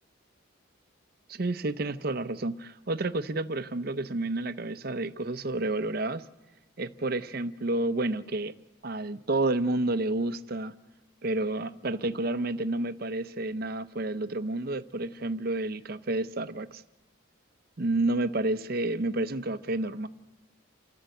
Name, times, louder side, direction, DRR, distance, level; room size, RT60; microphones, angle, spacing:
voice 1, 1.3-6.2 6.8-8.5 8.8-10.7 11.2-16.8 17.8-20.1, right 2 dB, 50° right, 0.7 m, -30 dB
29.0 x 12.5 x 7.8 m
head